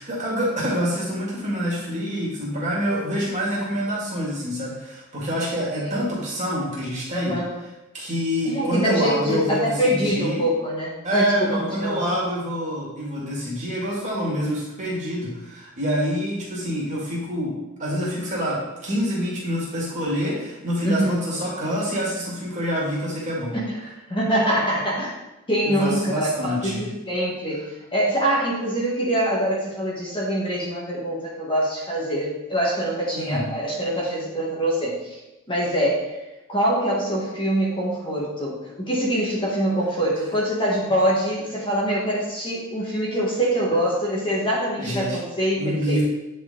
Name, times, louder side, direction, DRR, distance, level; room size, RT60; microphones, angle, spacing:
voice 1, 0.0-7.3 7.9-10.5 11.0-17.5 17.8-23.5 25.6-26.8 33.1-33.4 44.8-45.2 45.6-46.0, equal, 35° right, -6 dB, 2.5 m, -26 dB
voice 2, 7.1-7.5 8.4-12.0 20.8-21.2 23.5-25.1 25.5-35.2 35.5-36.1 36.5-46.0, right 1 dB, 25° left, -5 dB, 1.6 m, -24 dB
9.3 x 4.4 x 3.9 m, 1.0 s
head